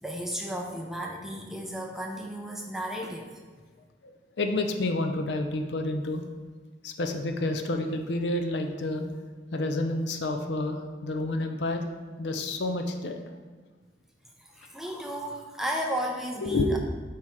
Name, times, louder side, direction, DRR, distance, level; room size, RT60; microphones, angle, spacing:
voice 1, 0.0-3.3 14.4-16.8, right 1 dB, ahead, 0 dB, 0.5 m, -34 dB
voice 2, 4.0-6.2 6.8-9.1 9.5-11.8 12.2-13.2 16.4-16.8, left 2 dB, 75° left, 5 dB, 0.5 m, -29 dB
7.4 x 2.9 x 4.7 m, 1.4 s
head